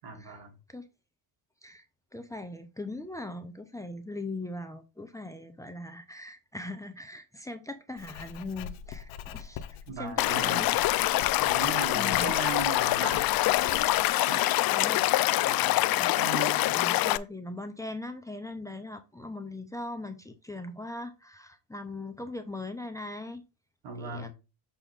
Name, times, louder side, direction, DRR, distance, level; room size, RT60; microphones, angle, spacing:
voice 1, 0.0-0.5 9.9-10.8 11.4-13.8 14.2-14.5 15.5-15.8 16.2-16.8 23.8-24.3, right 4 dB, 70° right, 3.1 m, -38 dB
voice 2, 2.1-9.6 10.0-10.7 11.9-12.3 14.7-15.0 15.9-16.3 16.8-23.4 24.0-24.3, left 2 dB, 5° left, 0.9 m, -40 dB
Writing, 8.0-14.1, left 8 dB, 80° left, 0.9 m, -43 dB
Stream / Liquid, 10.2-17.2, left 16 dB, 50° left, 0.5 m, -25 dB
6.9 x 4.5 x 3.6 m
supercardioid pair, 90°, 47 cm